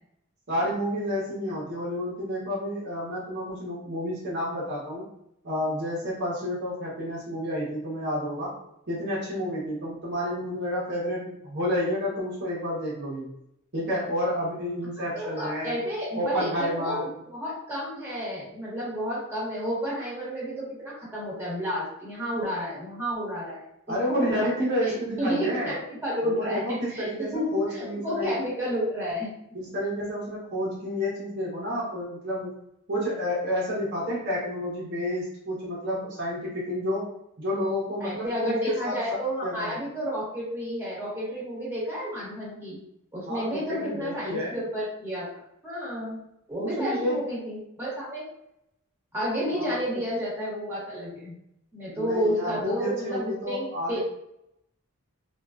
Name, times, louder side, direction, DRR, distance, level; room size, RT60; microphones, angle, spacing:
voice 1, 0.5-5.1 5.4-8.5 8.9-13.3 13.7-15.7 16.1-17.1 23.9-25.7 26.2-28.4 29.5-32.6 32.9-37.1 37.4-39.8 43.3-44.6 46.6-47.2 49.5-50.0 51.9-54.0, equal, 50° right, -6 dB, 0.8 m, -30 dB
voice 2, 15.0-23.6 24.1-24.5 24.8-26.6 26.9-29.3 38.0-42.8 43.1-45.3 45.6-48.2 49.1-51.3 51.7-54.0, equal, 10° right, -8 dB, 1.3 m, -31 dB
3.5 x 2.3 x 2.5 m, 0.78 s
head